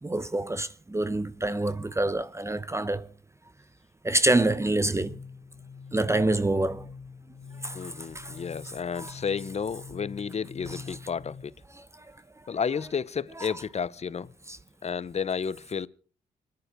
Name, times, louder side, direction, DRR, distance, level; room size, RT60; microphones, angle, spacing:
voice 1, 0.0-3.1 4.0-5.2 5.9-6.9 7.6-8.4 8.9-9.1 10.7-11.0 11.7-12.1 13.4-13.6 14.5-14.6, right 2 dB, 15° right, 0.8 m, -27 dB
sound 1, 4.5-11.4, left 5 dB, 60° left, 1.2 m, -45 dB
voice 2, 7.7-11.5 12.5-14.3 14.8-15.9, left 6 dB, 40° left, 0.8 m, -32 dB
24.5 x 10.5 x 4.9 m
supercardioid pair, 55°, 17 cm